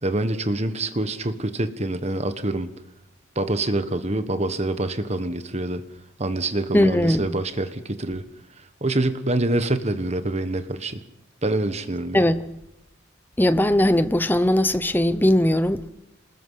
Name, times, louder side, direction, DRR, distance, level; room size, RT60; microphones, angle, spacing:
voice 1, 0.0-2.7 3.3-5.8 6.2-8.2 8.8-11.0 11.4-12.2, right 2 dB, 35° right, 1.4 m, -25 dB
voice 2, 6.7-7.2 12.1-12.4 13.4-15.9, left 1 dB, 10° left, 0.8 m, -19 dB
27.0 x 20.5 x 5.8 m
head